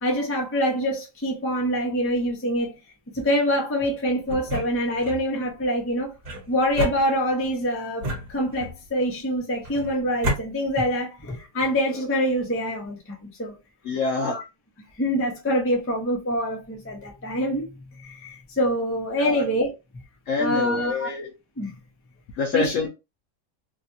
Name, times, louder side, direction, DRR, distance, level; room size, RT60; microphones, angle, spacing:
voice 1, 0.0-2.7 3.1-6.1 6.5-13.5 14.2-14.4 15.0-19.7 20.4-21.1 21.6-21.7 22.5-22.7, equal, 20° left, 0.4 m, -25 dB
sound 1, 4.3-5.2 6.2-7.5 8.0-8.9 9.6-10.4, equal, 50° right, 1.5 m, -31 dB
voice 2, 13.8-14.4 19.2-19.4 20.3-21.3 22.4-22.9, left 4 dB, 70° left, 0.8 m, -26 dB
3.3 x 2.2 x 2.6 m
omnidirectional pair, 1.8 m